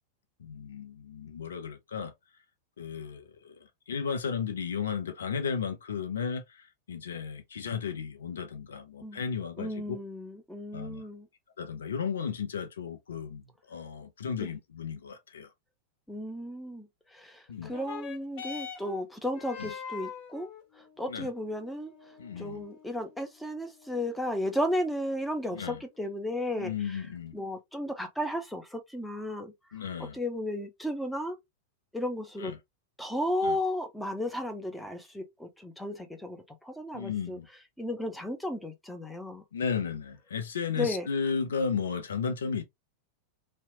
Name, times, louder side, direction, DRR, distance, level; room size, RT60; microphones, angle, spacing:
voice 1, 0.4-2.1 2.8-3.5 3.9-10.0 10.7-11.0 11.6-13.4 13.7-15.5 17.5-17.7 19.6-19.7 21.1-21.3 22.2-22.6 25.5-25.8 26.6-27.4 29.7-30.2 32.4-32.6 33.4-33.6 36.9-37.5 39.5-42.6, left 6 dB, 65° left, 0.5 m, -34 dB
voice 2, 9.6-11.3 14.4-14.5 16.1-20.5 20.8-21.9 22.4-27.0 27.3-29.5 30.1-31.4 31.9-32.5 33.0-37.4 37.8-39.4 40.8-41.1, left 1 dB, 5° left, 0.6 m, -34 dB
sound 1, 17.6-26.5 27.4-27.5, left 6 dB, 45° left, 0.9 m, -46 dB
2.8 x 2.1 x 2.7 m
figure-of-eight pair, 90°, 0 cm